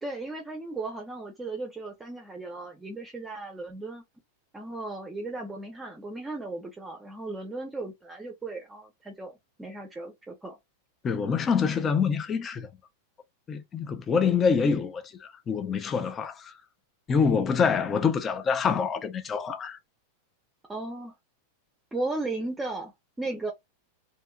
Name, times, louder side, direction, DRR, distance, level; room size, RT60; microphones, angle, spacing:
voice 1, 0.0-4.0 4.5-9.3 9.6-10.6 20.7-21.1 21.9-23.5, right 2 dB, 10° right, 0.7 m, -36 dB
voice 2, 11.0-12.7 13.5-16.5 17.1-19.8, left 6 dB, 25° left, 0.5 m, -26 dB
2.7 x 2.6 x 2.3 m
supercardioid pair, 135°, 0 cm